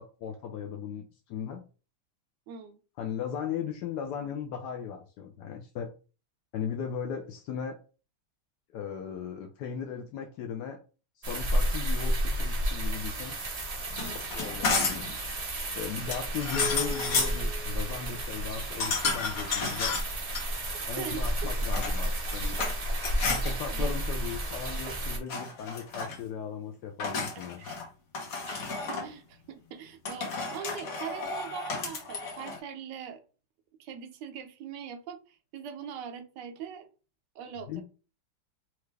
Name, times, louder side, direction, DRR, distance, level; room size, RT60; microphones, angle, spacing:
voice 1, 0.0-1.6 3.0-5.9 6.5-7.8 8.7-10.8 11.2-13.4 14.3-15.1 15.8-20.0 20.9-22.6 23.2-27.6 37.7-37.8, left 7 dB, 75° left, 4 dB, 1.1 m, -37 dB
voice 2, 2.5-2.8 14.0-14.2 21.0-21.3 23.2-23.9 27.6-27.8 28.5-33.2 33.8-36.9 37.3-37.8, right 7 dB, 85° right, 8 dB, 1.2 m, -42 dB
sound 1, 11.2-25.2, right 1 dB, 50° right, 0.4 m, -32 dB
sound 2, 13.9-15.1 16.1-17.4 18.8-20.4 21.5-22.7 23.0-23.5 24.7-25.0 25.3-26.2 27.0-27.9 28.1-29.1 30.0-32.6, left 4 dB, 60° left, 1.4 m, -32 dB
sound 3, 16.6-18.5, left 4 dB, 35° left, 0.8 m, -39 dB
4.5 x 2.4 x 3.1 m, 0.35 s
omnidirectional pair, 1.9 m